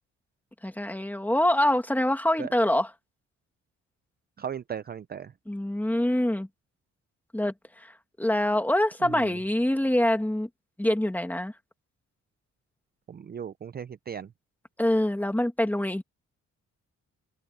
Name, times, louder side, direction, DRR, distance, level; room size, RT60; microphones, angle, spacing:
voice 1, 0.6-2.9 5.5-6.5 7.3-7.9 8.2-10.5 10.8-11.5 14.8-16.0, left 1 dB, 5° left, 2.3 m, -25 dB
voice 2, 4.4-5.3 9.0-9.3 13.1-14.3, right 8 dB, 35° right, 0.5 m, -37 dB
open air
cardioid pair, 115°, 29 cm